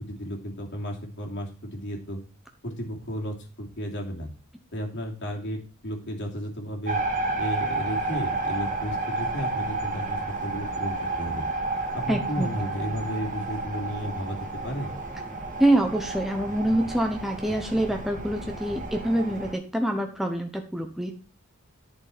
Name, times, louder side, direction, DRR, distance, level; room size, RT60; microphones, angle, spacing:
voice 1, 0.0-2.2 2.6-4.3 4.7-7.0 7.4-11.4 11.9-14.9, equal, 55° left, 0 dB, 3.0 m, -33 dB
sound 1, 6.9-19.5, right 2 dB, 40° right, 2.0 m, -31 dB
voice 2, 12.1-12.5 15.6-21.1, right 1 dB, ahead, 3 dB, 1.0 m, -25 dB
11.0 x 6.8 x 4.3 m, 0.35 s
head